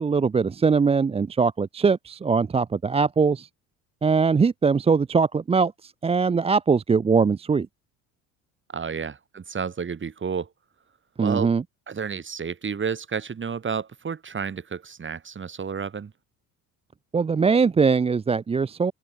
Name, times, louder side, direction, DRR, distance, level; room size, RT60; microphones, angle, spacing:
voice 1, 0.0-3.5 4.0-7.7 11.2-11.6 17.1-18.9, right 5 dB, 15° right, 0.5 m, -21 dB
voice 2, 8.7-10.5 11.2-11.5 11.9-16.1, right 6 dB, 30° right, 5.3 m, -31 dB
open air
cardioid pair, 100°, 37 cm